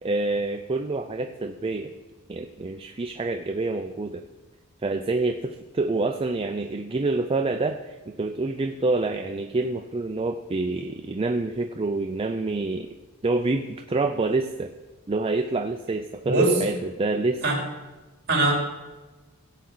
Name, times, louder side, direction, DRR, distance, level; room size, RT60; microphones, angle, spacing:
voice 1, 0.0-1.9 2.3-4.2 4.8-12.9 13.2-14.7 15.1-17.4, right 3 dB, 25° right, 5 dB, 0.5 m, -27 dB
voice 2, 16.2-16.6 17.4-17.6 18.3-18.5, right 2 dB, 50° right, -2 dB, 4.0 m, -21 dB
15.5 x 8.4 x 4.0 m, 1.2 s
head